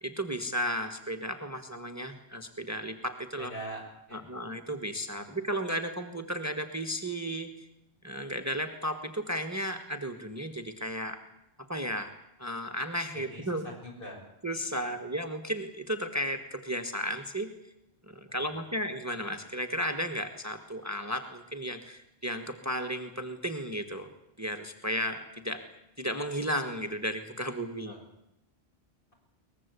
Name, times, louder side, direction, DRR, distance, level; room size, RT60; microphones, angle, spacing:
voice 1, 0.0-3.5 4.1-7.7 8.0-11.2 11.7-12.1 12.4-13.7 14.4-17.5 18.3-24.1 24.4-25.6 26.0-27.9, equal, 15° right, 7 dB, 1.5 m, -34 dB
voice 2, 3.4-3.8 4.1-4.2 13.1-14.2 27.9-28.0, right 1 dB, 55° left, 1 dB, 7.1 m, -42 dB
23.0 x 20.0 x 8.3 m, 0.84 s
omnidirectional pair, 1.1 m